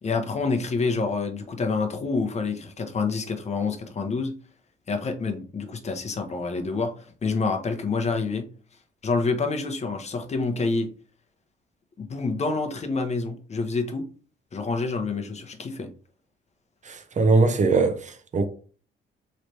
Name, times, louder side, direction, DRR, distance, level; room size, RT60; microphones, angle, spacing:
voice 1, 0.0-4.3 4.9-8.5 9.0-10.9 12.0-14.0 14.5-15.9, left 4 dB, 35° left, 0.8 m, -27 dB
voice 2, 16.9-18.5, right 3 dB, 40° right, 0.7 m, -21 dB
3.2 x 3.2 x 2.7 m
cardioid pair, 90°, 20 cm